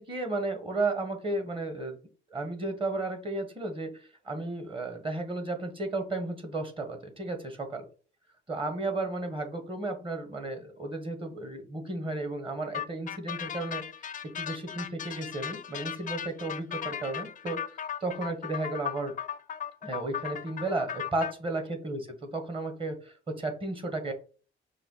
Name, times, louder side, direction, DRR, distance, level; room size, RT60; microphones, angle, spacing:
voice 1, 0.0-2.0 2.3-7.9 8.5-13.9 14.4-17.6 18.0-19.1 19.8-24.1, right 2 dB, 25° right, 6 dB, 1.2 m, -33 dB
sound 1, 12.7-21.3, left 9 dB, 40° left, 0.4 m, -37 dB
5.3 x 2.3 x 4.0 m, 0.38 s
cardioid pair, 90°, 20 cm